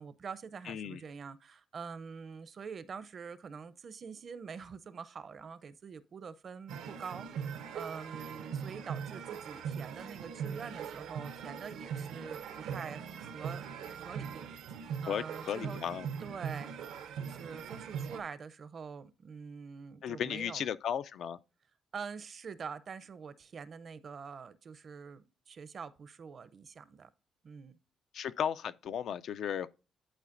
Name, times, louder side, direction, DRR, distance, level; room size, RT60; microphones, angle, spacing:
voice 1, 0.0-13.6 13.9-15.8 16.2-16.7 17.2-20.6 21.9-27.1 27.4-27.8, right 6 dB, 50° right, 0.5 m, -45 dB
voice 2, 0.7-1.0 15.1-16.1 20.0-21.4 28.1-29.7, left 9 dB, 70° left, 0.3 m, -35 dB
sound 1, 6.7-18.2, right 7 dB, 85° right, 0.7 m, -41 dB
11.0 x 4.0 x 2.5 m
cardioid pair, 90°, 0 cm